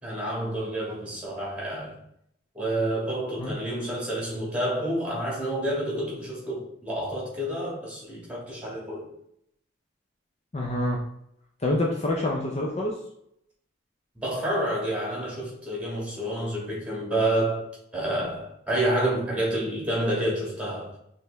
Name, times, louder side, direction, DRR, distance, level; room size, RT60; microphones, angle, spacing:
voice 1, 0.0-2.0 2.5-9.1 14.1-17.6 17.9-20.9, right 1 dB, 5° right, 1.7 m, -29 dB
voice 2, 10.5-11.0 11.6-13.0, left 1 dB, 30° left, 0.5 m, -26 dB
4.7 x 3.4 x 3.2 m
head